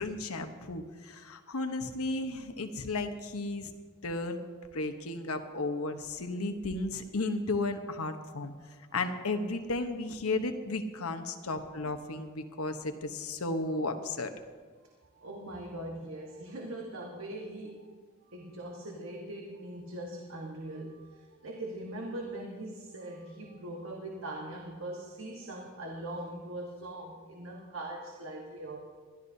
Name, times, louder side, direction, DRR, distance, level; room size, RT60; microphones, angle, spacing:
voice 1, 0.0-3.7 4.0-4.4 4.7-8.5 8.9-14.3, left 2 dB, 90° left, 6 dB, 1.1 m, -34 dB
voice 2, 15.1-18.0 18.3-28.8, right 1 dB, 65° right, 0 dB, 1.4 m, -41 dB
22.0 x 13.0 x 2.8 m, 1.5 s
head